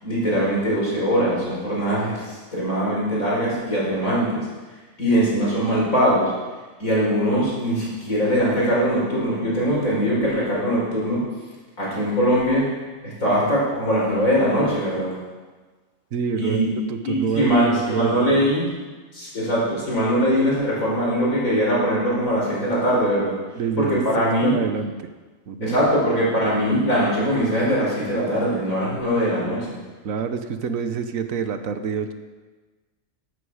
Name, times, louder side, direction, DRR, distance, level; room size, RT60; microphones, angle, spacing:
voice 1, 0.0-4.5 5.0-6.3 6.8-11.2 11.8-12.7 13.0-15.1 16.4-16.7 17.0-18.7 19.1-23.4 23.8-24.5 25.6-29.8, equal, 80° left, -5 dB, 5.5 m, -21 dB
voice 2, 16.1-18.5 23.6-24.9 25.5-25.8 30.0-32.1, right 6 dB, 85° right, 8 dB, 1.4 m, -27 dB
13.5 x 11.5 x 4.9 m, 1.3 s
omnidirectional pair, 1.4 m